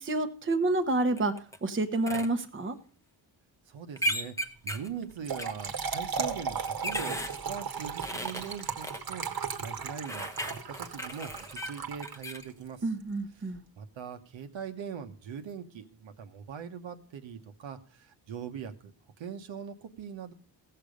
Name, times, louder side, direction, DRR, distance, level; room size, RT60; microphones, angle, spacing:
voice 1, 0.0-1.3 1.6-2.8 12.8-13.6, right 2 dB, 25° right, 7 dB, 1.0 m, -28 dB
sound 1, 1.2-1.6 2.1-2.3 4.0-4.9 5.4-5.5 6.4-7.4 8.0-9.0 10.1-12.5, equal, 5° left, 0.8 m, -35 dB
voice 2, 3.7-4.3 4.6-7.2 7.5-9.2 9.6-12.8 13.8-18.9 19.2-20.3, right 7 dB, 80° right, 6 dB, 1.2 m, -41 dB
Trickle dribble / Fill (with liquid), 5.0-12.5, right 6 dB, 50° right, 1.4 m, -36 dB
16.5 x 6.8 x 5.2 m, 0.42 s
wide cardioid pair, 120°, 45 cm